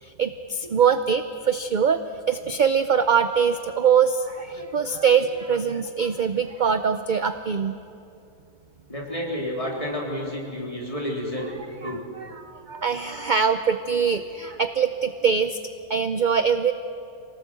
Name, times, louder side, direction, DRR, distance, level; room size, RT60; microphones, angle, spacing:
voice 1, 0.0-2.0 2.3-7.7 11.8-15.6 15.9-16.7, right 6 dB, 50° right, 10 dB, 0.5 m, -23 dB
voice 2, 8.9-11.5 11.8-12.0, left 1 dB, 20° left, -2 dB, 3.7 m, -30 dB
24.5 x 18.0 x 7.6 m, 2.6 s
omnidirectional pair, 1.6 m